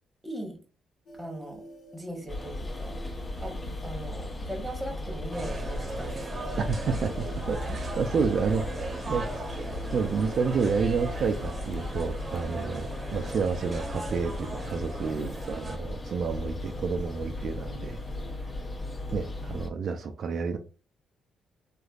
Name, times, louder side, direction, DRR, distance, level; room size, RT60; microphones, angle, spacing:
voice 1, 0.2-0.6 1.1-1.6 1.9-3.0 3.4-3.5 3.8-6.5 7.0-7.1 19.4-19.5, right 1 dB, 5° right, 1.1 m, -39 dB
sound 1, 1.1-18.3, left 1 dB, 75° left, 1.3 m, -49 dB
sound 2, 2.3-19.7, left 1 dB, 25° left, 0.7 m, -36 dB
sound 3, 5.3-15.8, right 3 dB, 30° right, 0.8 m, -39 dB
voice 2, 6.6-7.1 7.5-9.4 9.9-18.0 19.1-20.6, right 5 dB, 60° right, 0.3 m, -30 dB
3.2 x 2.4 x 2.3 m
cardioid pair, 90°, 0 cm